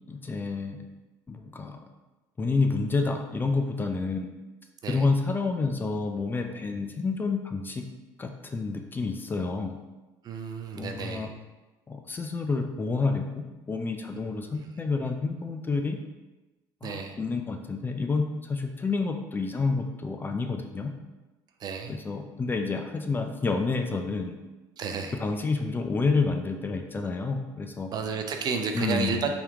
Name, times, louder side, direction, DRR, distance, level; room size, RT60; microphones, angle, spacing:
voice 1, 0.1-0.8 1.3-1.8 2.4-4.3 4.9-7.8 8.2-9.8 10.8-11.3 11.9-13.3 13.7-16.0 16.8-20.9 21.9-24.4 25.2-27.9 28.7-29.2, left 4 dB, 20° left, 4 dB, 0.4 m, -29 dB
voice 2, 10.2-11.3 14.3-14.5 16.8-17.2 21.6-22.0 24.8-25.2 27.9-29.3, right 6 dB, 45° right, 5 dB, 0.5 m, -32 dB
3.6 x 2.9 x 3.5 m, 1.1 s
supercardioid pair, 100°, 9 cm